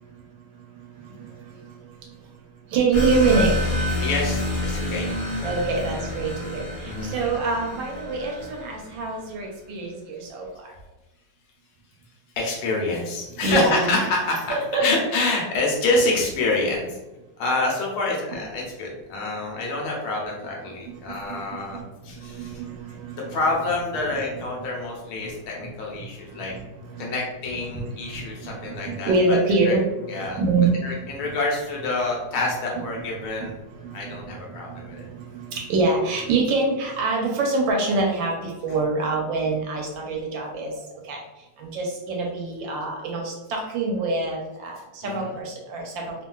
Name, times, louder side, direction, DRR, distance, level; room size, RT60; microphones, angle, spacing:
voice 1, 1.0-1.7 2.7-3.5 5.4-10.7 13.4-14.0 14.5-14.9 20.9-23.4 25.2-25.3 25.6-25.7 25.9-26.0 26.3-27.1 27.7-27.8 28.0-31.3 33.4-41.2 41.6-46.1, right 3 dB, 75° right, 0 dB, 1.2 m, -26 dB
sound 1, 2.9-9.2, left 1 dB, 55° left, 1.4 m, -28 dB
voice 2, 4.0-5.1 6.8-7.1 12.4-17.0 17.4-22.6 23.3-26.5 27.0-29.4 29.6-29.7 30.1-30.4 30.8-33.6 33.9-35.1 45.0-45.4, left 2 dB, 85° left, -2 dB, 1.6 m, -27 dB
3.6 x 2.4 x 2.3 m, 1.1 s
omnidirectional pair, 2.3 m